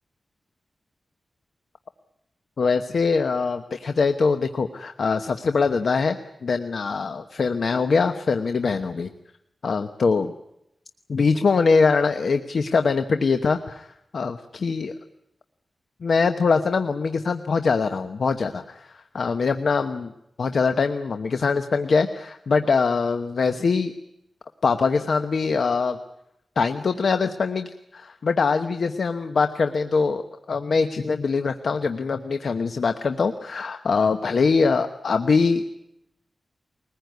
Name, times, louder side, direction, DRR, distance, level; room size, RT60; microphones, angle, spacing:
voice 1, 2.6-6.2 6.4-9.1 9.6-10.3 11.1-13.9 14.1-15.0 16.0-20.1 20.4-23.9 24.6-26.0 26.6-30.2 30.5-35.6, left 4 dB, 65° left, 8 dB, 1.0 m, -23 dB
22.5 x 20.0 x 9.4 m, 0.82 s
wide cardioid pair, 120°, 0 cm